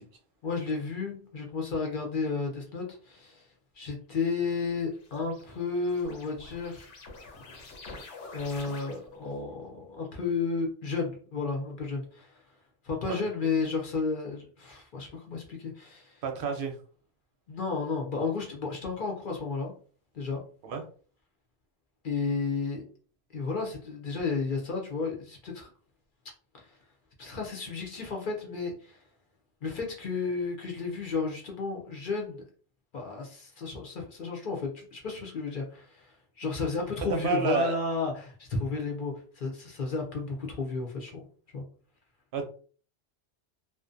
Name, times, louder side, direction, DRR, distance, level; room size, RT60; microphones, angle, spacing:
voice 1, 0.4-3.5 3.8-6.9 8.3-12.4 12.8-16.2 17.5-19.7 20.1-20.4 22.0-22.8 23.3-25.7 26.6-26.8 27.2-29.0 29.6-32.4 32.9-41.2 41.5-41.6, left 4 dB, 55° left, 0 dB, 0.7 m, -32 dB
sound 1, 4.4-9.3, left 3 dB, 85° left, 1.0 m, -47 dB
voice 2, 16.2-16.7 20.6-20.8 37.2-37.8 42.3-42.4, right 5 dB, 60° right, 4 dB, 0.6 m, -29 dB
2.5 x 2.1 x 2.5 m, 0.42 s
omnidirectional pair, 1.2 m